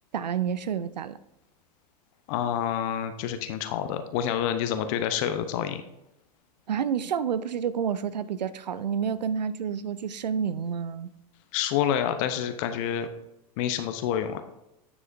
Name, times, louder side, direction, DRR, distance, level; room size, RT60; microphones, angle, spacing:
voice 1, 0.1-1.2 6.7-11.1, right 7 dB, 85° right, 16 dB, 0.5 m, -29 dB
voice 2, 2.3-5.8 11.5-13.1 13.6-14.4, left 9 dB, 50° left, 9 dB, 0.8 m, -28 dB
9.9 x 7.0 x 2.6 m, 0.89 s
hypercardioid pair, 95°, 21 cm